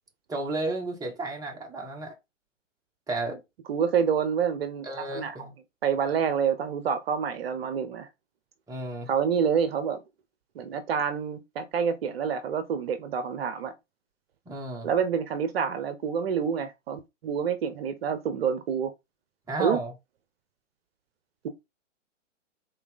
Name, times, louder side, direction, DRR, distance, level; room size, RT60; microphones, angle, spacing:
voice 1, 0.3-2.1 3.1-3.4 4.8-5.5 8.7-9.1 14.4-14.9 19.5-19.9, right 2 dB, 10° right, 1.5 m, -32 dB
voice 2, 3.7-4.9 5.1-5.5 5.8-8.1 9.1-10.0 10.5-13.7 14.8-18.9 19.6-19.8 21.4-21.5, right 7 dB, 50° right, 0.9 m, -27 dB
5.8 x 4.1 x 4.0 m
hypercardioid pair, 125°, 38 cm